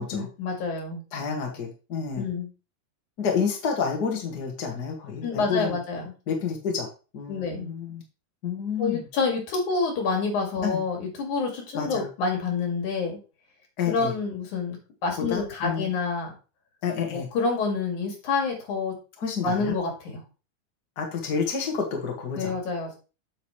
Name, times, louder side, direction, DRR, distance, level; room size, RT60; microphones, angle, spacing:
voice 1, 0.0-1.0 2.2-2.5 5.2-6.1 7.3-7.7 8.8-13.2 13.9-16.3 17.1-18.9 19.4-20.2 22.4-23.0, left 4 dB, 75° left, 1 dB, 3.8 m, -28 dB
voice 2, 1.1-2.3 3.2-5.8 6.3-6.9 7.1-8.0 8.4-9.0 10.6-10.8 11.7-12.1 13.8-14.1 15.3-15.9 16.8-17.3 19.2-19.7 21.0-22.6, left 6 dB, 40° left, 1 dB, 1.9 m, -29 dB
8.0 x 7.1 x 3.2 m, 0.33 s
omnidirectional pair, 3.5 m